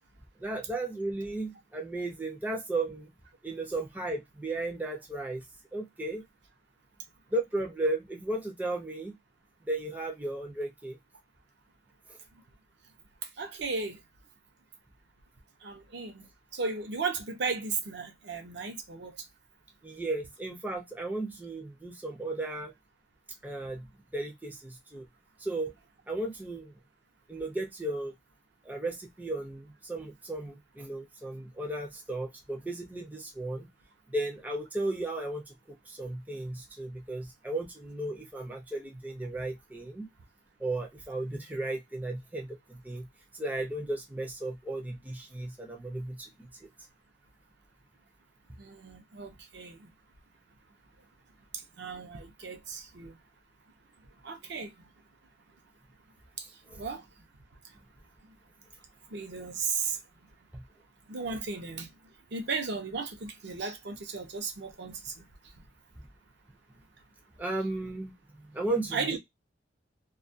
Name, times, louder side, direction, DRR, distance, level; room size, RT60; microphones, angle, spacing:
voice 1, 0.4-3.1 3.4-5.4 5.7-6.2 7.3-9.2 9.7-11.0 19.8-22.7 23.4-23.9 24.1-25.0 25.4-25.7 26.1-26.7 27.3-28.1 28.6-33.7 34.1-35.4 35.9-40.1 40.6-43.1 43.4-46.5 56.7-56.8 60.5-60.6 67.4-68.1 68.5-69.2, right 2 dB, 10° right, 0.4 m, -35 dB
voice 2, 13.4-14.0 15.6-16.3 16.5-19.2 48.6-49.9 51.8-53.2 54.2-54.9 56.4-56.5 56.8-57.0 59.1-60.0 61.1-61.9 62.3-65.2 68.9-69.2, right 4 dB, 60° right, 0.6 m, -35 dB
2.3 x 2.1 x 2.5 m
head